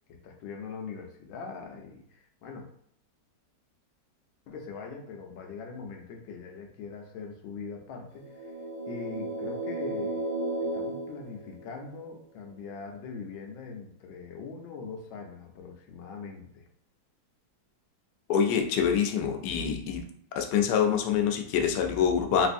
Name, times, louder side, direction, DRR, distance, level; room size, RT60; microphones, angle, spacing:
voice 1, 0.2-2.7 4.5-8.3 8.9-10.2 10.7-16.7, left 5 dB, 90° left, 3 dB, 1.4 m, -42 dB
sound 1, 8.2-12.1, right 1 dB, 85° right, 0.7 m, -34 dB
voice 2, 18.3-20.1 20.3-22.5, left 7 dB, 70° left, 3 dB, 1.1 m, -25 dB
3.4 x 3.1 x 2.5 m, 0.66 s
omnidirectional pair, 2.0 m